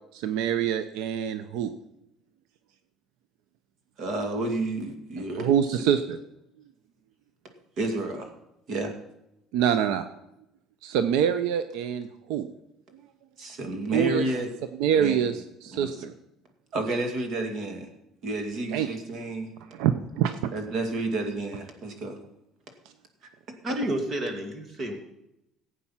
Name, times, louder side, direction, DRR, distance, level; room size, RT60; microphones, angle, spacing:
voice 1, 0.1-1.7 5.4-6.2 9.5-10.1 10.8-12.5 13.9-14.3 14.8-16.1 18.7-18.9 19.7-20.5, right 9 dB, 85° right, 11 dB, 0.7 m, -25 dB
voice 2, 4.0-5.5 5.8-5.9 7.8-8.3 8.7-8.9 13.4-14.5 14.9-15.2 15.7-16.0 16.7-17.9 18.2-19.5 20.5-22.2 23.2-23.3, right 2 dB, 50° right, 5 dB, 2.3 m, -30 dB
voice 3, 23.6-24.9, right 1 dB, 30° right, 5 dB, 2.1 m, -30 dB
16.0 x 8.4 x 5.7 m, 0.85 s
cardioid pair, 150°, 0 cm